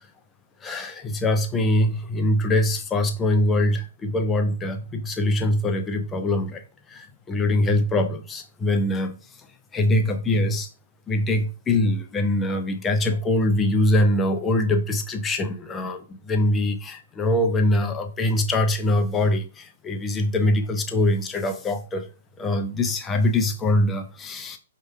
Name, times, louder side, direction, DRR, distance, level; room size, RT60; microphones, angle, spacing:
voice 1, 0.6-6.6 6.9-9.1 9.7-10.7 11.1-19.5 19.8-22.1 22.4-24.6, left 1 dB, 15° left, 0.4 m, -23 dB
4.5 x 2.7 x 2.2 m
hypercardioid pair, 125°, 0 cm